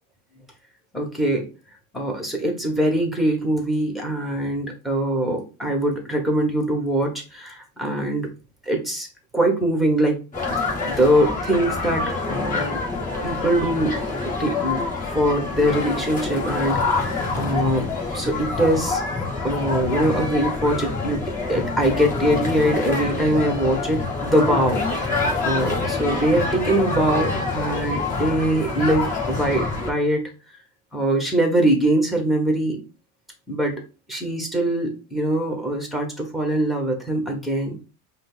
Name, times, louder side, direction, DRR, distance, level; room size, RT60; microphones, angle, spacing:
voice 1, 0.9-1.5 1.9-8.3 8.6-9.1 9.3-10.2 10.5-12.8 13.2-14.8 15.1-17.9 18.1-19.0 19.4-30.2 30.9-32.8 33.5-33.8 34.1-37.8, right 1 dB, ahead, 3 dB, 1.1 m, -23 dB
sound 1, 10.3-29.9, left 3 dB, 20° left, 1.4 m, -26 dB
5.0 x 2.1 x 3.8 m, 0.32 s
cardioid pair, 140°, 38 cm